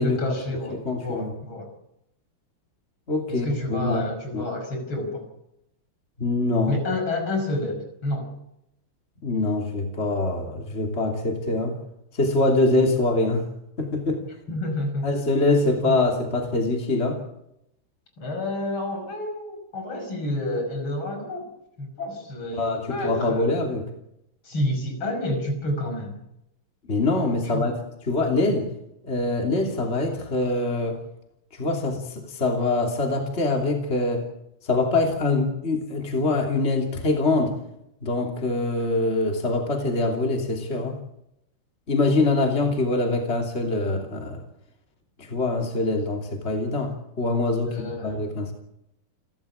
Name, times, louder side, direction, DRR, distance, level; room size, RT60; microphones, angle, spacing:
voice 1, 0.0-1.7 3.3-5.3 6.7-8.3 14.5-15.2 15.8-16.0 18.2-21.5 21.8-23.6 24.4-26.2 27.4-27.7 47.6-48.2, left 1 dB, 70° left, 4 dB, 6.2 m, -29 dB
voice 2, 0.8-1.3 3.1-4.0 4.3-4.4 6.2-6.7 9.2-11.7 12.1-13.4 13.8-14.2 15.0-17.2 22.5-23.9 26.9-27.7 28.1-28.7 29.0-31.0 31.6-34.3 34.6-37.5 38.0-41.0 41.9-44.4 45.2-48.5, left 2 dB, 30° left, 2 dB, 3.2 m, -24 dB
29.0 x 13.5 x 8.6 m, 0.83 s
omnidirectional pair, 2.4 m